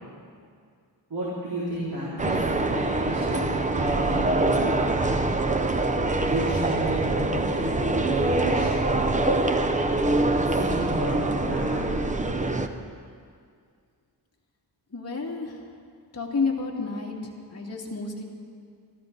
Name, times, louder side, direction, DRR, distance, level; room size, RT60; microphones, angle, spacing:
voice 1, 1.1-3.4 3.7-5.2 6.2-9.1 10.4-11.1 11.4-11.9, right 1 dB, 60° right, -9 dB, 4.7 m, -33 dB
sound 1, 2.2-12.7, right 2 dB, 20° right, 0.6 m, -24 dB
voice 2, 14.9-15.6 16.1-17.1 17.5-18.2, left 4 dB, 35° left, -2 dB, 2.2 m, -30 dB
25.0 x 14.5 x 3.9 m, 2.1 s
wide cardioid pair, 175°, 42 cm